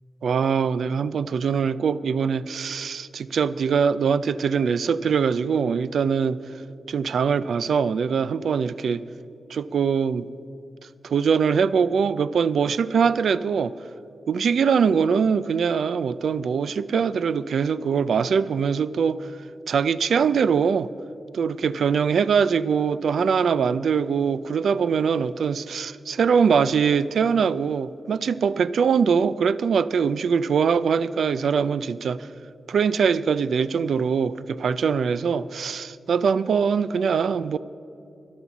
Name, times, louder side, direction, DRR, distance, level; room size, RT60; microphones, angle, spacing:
voice 1, 0.2-6.4 6.9-9.0 9.5-10.3 11.0-13.7 14.3-19.3 19.7-20.9 21.3-32.3 32.7-37.6, right 6 dB, 75° right, 16 dB, 0.4 m, -22 dB
12.5 x 10.5 x 7.1 m, 2.7 s
wide cardioid pair, 155°, 0 cm